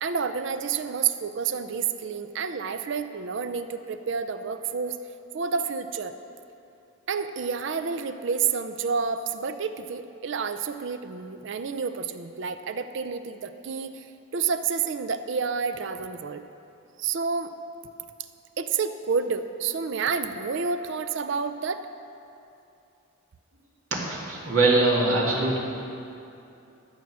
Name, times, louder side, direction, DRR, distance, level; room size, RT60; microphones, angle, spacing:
voice 1, 0.0-5.0 5.3-6.1 7.1-14.1 14.3-16.4 17.0-17.5 18.6-21.8, right 5 dB, 60° right, 10 dB, 0.5 m, -29 dB
voice 2, 24.0-25.6, right 2 dB, 80° right, -3 dB, 2.3 m, -22 dB
13.5 x 7.3 x 6.1 m, 2.7 s
head